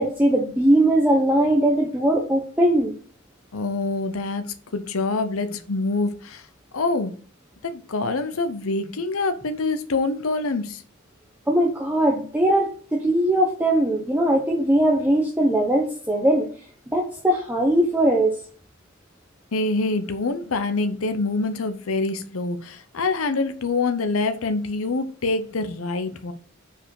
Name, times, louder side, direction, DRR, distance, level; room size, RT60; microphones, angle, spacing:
voice 1, 0.0-2.9 11.5-16.5 16.9-18.4, right 1 dB, 10° right, 0.8 m, -20 dB
voice 2, 3.5-6.4 6.7-7.1 7.6-10.8 19.5-26.3, left 3 dB, 80° left, 0.7 m, -25 dB
5.5 x 4.7 x 4.8 m
head